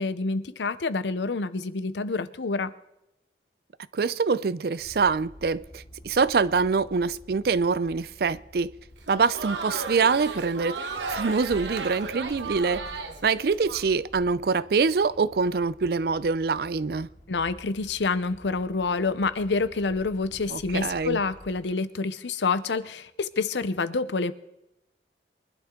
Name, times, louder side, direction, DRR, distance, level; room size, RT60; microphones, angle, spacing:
voice 1, 0.0-2.7 17.3-24.3, left 4 dB, 80° left, 0.7 m, -27 dB
voice 2, 3.9-8.7 9.1-10.8 11.1-12.9 13.2-17.1 20.5-21.2, right 4 dB, 55° right, 0.4 m, -25 dB
sound 1, 4.8-21.6, equal, 40° left, 1.8 m, -49 dB
Crowd, 9.0-13.8, right 4 dB, 80° right, 1.3 m, -35 dB
23.5 x 11.5 x 3.7 m
head